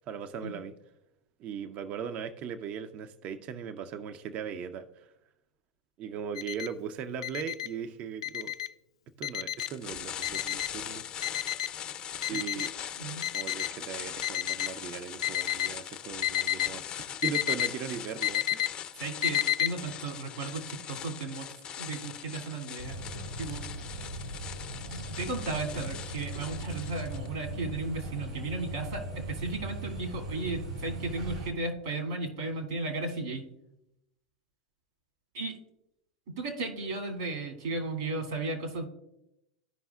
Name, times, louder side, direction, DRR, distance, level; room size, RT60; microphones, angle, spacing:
voice 1, 0.1-0.7 1.4-5.1 6.0-8.5 9.2-11.3 12.3-12.7 13.3-18.7, right 7 dB, 45° right, 10 dB, 0.6 m, -38 dB
Alarm, 6.3-6.7 7.2-7.7 8.2-8.7 9.2-9.7 10.2-10.7 11.2-11.7 12.2-12.7 13.2-13.7 14.2-14.7 15.2-15.7 16.2-16.7 17.2-17.7 18.2-18.7 19.2-19.7, left 13 dB, 80° left, 0.3 m, -29 dB
sound 1, 9.6-27.3, left 9 dB, 35° left, 0.6 m, -41 dB
voice 2, 19.0-21.5 21.8-23.0 23.4-23.6 24.9-33.5 35.3-35.6 36.3-38.9, right 3 dB, 65° right, 3 dB, 2.4 m, -35 dB
sound 2, 22.8-31.5, right 1 dB, 90° right, 2.6 m, -39 dB
14.0 x 5.4 x 2.3 m, 0.85 s
hypercardioid pair, 95°, 3 cm